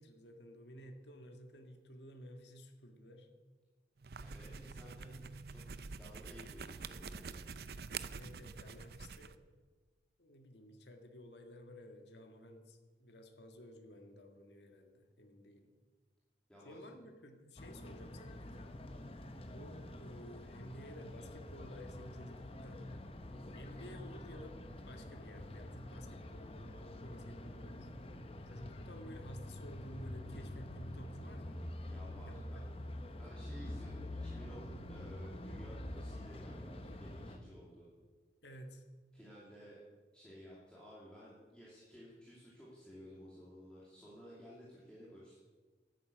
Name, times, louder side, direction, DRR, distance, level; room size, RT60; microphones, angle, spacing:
voice 1, 0.0-3.3 8.1-9.4 10.2-15.7 16.6-18.7 19.5-22.8 23.3-24.6 24.9-27.9 28.4-31.6 32.3-32.8 38.4-38.8, equal, 75° left, 4 dB, 1.8 m, -53 dB
sound 1, 4.0-9.4, right 5 dB, 55° right, 0.6 m, -47 dB
voice 2, 4.2-5.6 6.0-7.5 16.5-16.9 31.9-32.6 33.1-37.9 39.1-39.8 40.1-45.4, equal, 5° left, -8 dB, 2.7 m, -55 dB
sound 2, 17.6-37.4, left 1 dB, 30° left, 0.9 m, -47 dB
12.5 x 9.5 x 7.8 m, 1.4 s
head